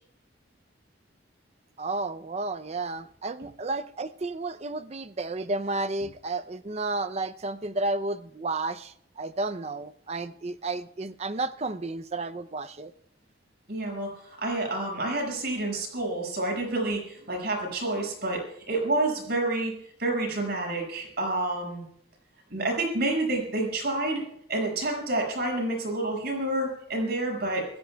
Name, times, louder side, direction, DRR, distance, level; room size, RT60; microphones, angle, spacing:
voice 1, 1.8-12.9, right 2 dB, 35° right, 0.6 m, -32 dB
voice 2, 13.7-19.7 20.0-21.8 22.5-24.2 24.5-27.7, right 2 dB, 60° right, 6.2 m, -29 dB
25.5 x 16.0 x 2.3 m
head